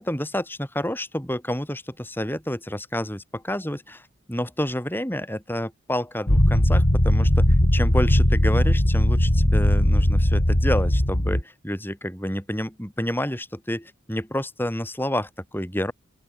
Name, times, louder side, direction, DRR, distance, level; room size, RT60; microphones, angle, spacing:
voice 1, 0.0-4.0 4.3-15.9, left 1 dB, 10° left, 5.7 m, -29 dB
sound 1, 6.3-11.4, left 1 dB, 50° left, 3.2 m, -19 dB
open air
head